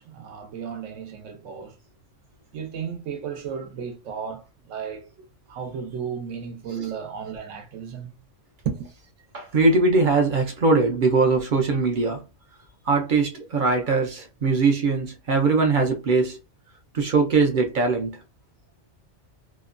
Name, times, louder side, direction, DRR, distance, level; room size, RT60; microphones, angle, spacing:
voice 1, 0.0-1.8 2.5-5.1 5.5-8.1 8.6-8.9, right 7 dB, 90° right, 1.0 m, -34 dB
voice 2, 9.3-12.2 12.9-16.4 16.9-18.2, right 3 dB, 60° right, 0.5 m, -21 dB
2.8 x 2.1 x 2.4 m
omnidirectional pair, 1.2 m